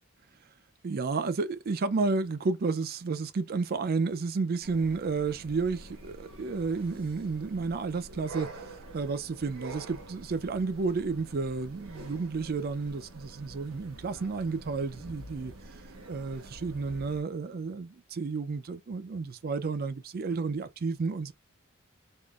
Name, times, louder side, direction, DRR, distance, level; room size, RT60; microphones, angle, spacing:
voice 1, 0.8-15.5 16.1-21.3, right 4 dB, 45° right, 0.4 m, -31 dB
sound 1, 4.6-17.2, right 2 dB, 80° right, 1.2 m, -47 dB
3.6 x 2.5 x 2.4 m
head